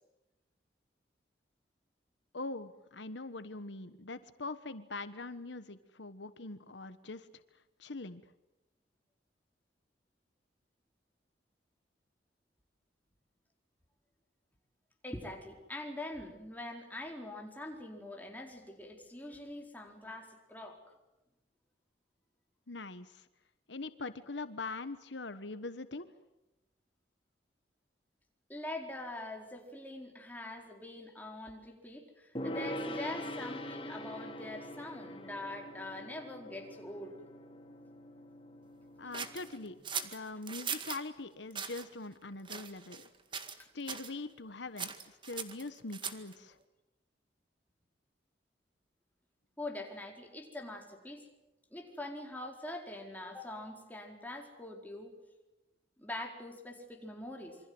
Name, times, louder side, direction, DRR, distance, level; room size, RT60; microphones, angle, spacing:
voice 1, 2.3-7.3 7.8-8.2 22.7-23.3 23.7-26.1 39.0-39.8 40.0-43.1 43.7-46.6, left 3 dB, 80° left, 12 dB, 1.3 m, -42 dB
voice 2, 15.0-20.8 28.5-37.2 43.6-43.7 49.6-51.2 51.7-55.1 56.0-57.6, left 1 dB, 10° left, 2 dB, 4.5 m, -44 dB
Gong, 32.4-39.8, left 1 dB, 30° left, 2.9 m, -43 dB
sound 1, 39.1-41.0 41.5-41.9 42.5-43.1 43.3-43.6 43.9-44.1 44.8-46.3, right 6 dB, 25° right, 2.0 m, -40 dB
27.5 x 25.0 x 7.9 m, 0.98 s
head